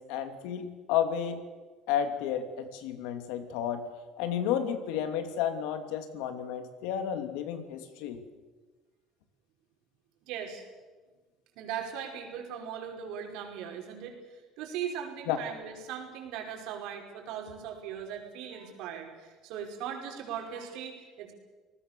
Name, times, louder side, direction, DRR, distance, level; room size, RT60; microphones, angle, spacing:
voice 1, 0.0-1.4 1.9-3.9 4.2-8.2 15.3-15.4, left 9 dB, 90° left, 8 dB, 2.8 m, -32 dB
voice 2, 10.3-10.6 11.6-21.3, right 8 dB, 75° right, 2 dB, 5.7 m, -39 dB
29.0 x 19.0 x 7.0 m, 1.3 s
cardioid pair, 120°, 0 cm